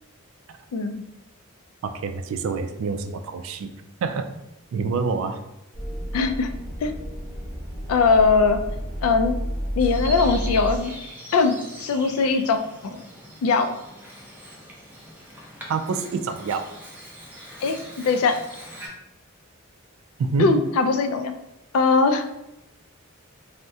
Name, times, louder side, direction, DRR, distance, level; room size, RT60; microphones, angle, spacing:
voice 1, 0.7-1.0 6.1-6.5 6.8-6.9 7.9-8.6 9.0-9.3 9.8-10.9 11.3-13.0 13.4-13.7 17.6-18.4 20.4-21.3 21.7-22.3, left 4 dB, 90° left, 8 dB, 0.3 m, -21 dB
voice 2, 1.8-3.7 4.0-4.3 4.7-5.4 15.7-16.7 20.2-20.5, right 4 dB, 70° right, 9 dB, 0.3 m, -27 dB
sound 1, 5.7-10.8, equal, 25° left, 1.2 m, -31 dB
Bird vocalization bird call bird song, 9.8-18.9, equal, 10° right, 0.5 m, -42 dB
3.5 x 2.1 x 2.6 m, 0.88 s
head